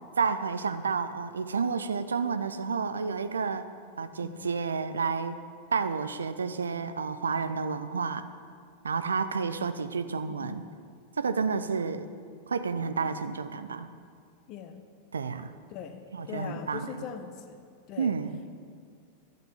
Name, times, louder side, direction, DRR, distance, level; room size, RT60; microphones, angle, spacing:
voice 1, 0.2-3.7 4.0-5.4 5.7-8.2 8.8-10.6 11.2-12.1 12.5-13.9 15.1-15.5 16.1-17.0 18.0-18.4, right 5 dB, 70° right, 11 dB, 0.5 m, -30 dB
voice 2, 10.3-10.6 14.5-14.8 15.7-17.6 17.9-18.1, left 7 dB, 40° left, 8 dB, 1.0 m, -41 dB
11.5 x 7.8 x 6.9 m, 2.2 s
figure-of-eight pair, 90°, 0 cm